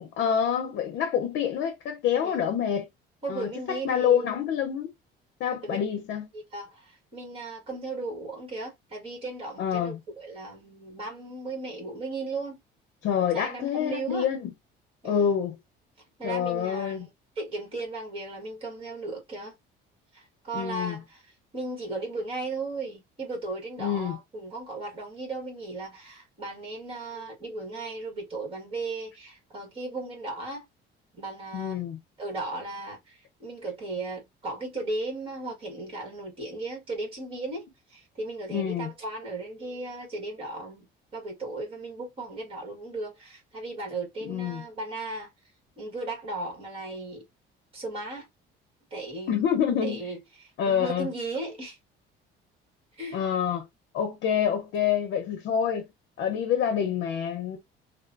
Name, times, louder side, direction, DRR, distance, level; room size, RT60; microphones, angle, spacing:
voice 1, 0.0-2.9 3.3-4.9 5.4-6.3 9.6-10.0 13.0-14.5 15.0-15.6 16.2-17.1 20.5-21.0 23.8-24.2 31.5-32.0 38.5-38.9 44.2-44.6 49.3-50.0 50.6-51.1 53.1-53.7 53.9-55.9 56.2-57.6, left 8 dB, 60° left, 0.7 m, -27 dB
voice 2, 3.2-4.3 5.6-5.8 6.3-12.6 13.3-14.3 15.0-15.4 16.2-17.1 17.4-19.5 20.1-21.2 21.5-30.6 31.1-31.8 32.2-40.9 41.1-45.3 45.8-47.2 47.7-48.3 48.9-49.4 49.8-51.8 53.0-53.2, right 2 dB, 25° right, 1.4 m, -36 dB
2.9 x 2.1 x 2.4 m
cardioid pair, 170°, 20 cm